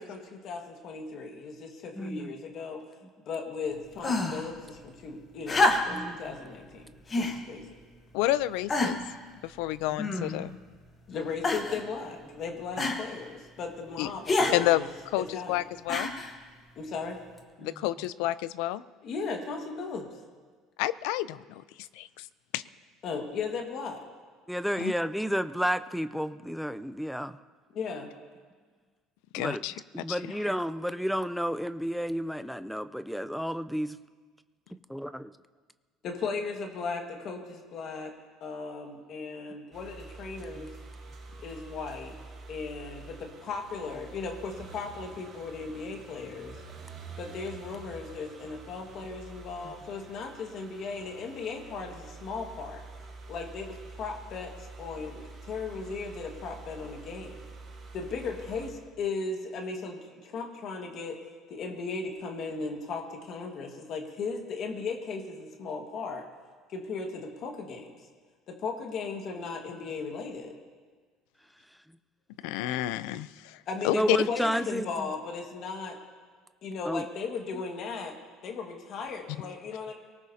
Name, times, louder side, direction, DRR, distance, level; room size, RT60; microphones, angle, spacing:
voice 1, 0.0-2.8 3.2-7.7 11.1-14.9 15.2-15.6 16.8-17.2 19.0-20.1 23.0-24.0 27.7-28.1 36.0-38.1 38.4-40.7 41.4-42.2 42.5-46.6 47.2-52.8 53.3-57.5 57.9-61.2 61.5-66.3 66.7-68.0 68.5-70.5 73.7-76.0 76.6-78.2 78.4-79.9, left 4 dB, 35° left, 2 dB, 1.6 m, -37 dB
voice 2, 2.0-2.3 5.9-6.2 10.0-10.2 17.6-17.9 24.5-27.4 29.4-29.6 29.9-34.0 34.9-35.3 40.6-40.7 49.6-49.7 73.9-75.1 76.9-77.0, equal, ahead, 12 dB, 0.4 m, -31 dB
sound 1, 4.0-4.5 5.5-6.1 7.1-7.4 8.1-8.2 8.7-9.1 10.0-10.5 11.4-11.8 12.8-13.0 14.3-14.6 15.9-16.3 17.4-17.5, left 2 dB, 20° left, 1.1 m, -27 dB
voice 3, 8.1-9.0 9.4-10.6 14.0-14.1 14.5-14.8 15.1-16.1 17.6-18.8 20.8-21.6 21.9-22.3 22.5-22.6 24.8-24.9 29.3-29.7 30.1-30.2 72.4-73.6 73.8-74.2, left 15 dB, 75° left, 16 dB, 0.5 m, -29 dB
sound 2, 39.7-58.7, right 3 dB, 25° right, 5.0 m, -47 dB
24.0 x 18.5 x 2.8 m, 1.5 s
cardioid pair, 180°, 0 cm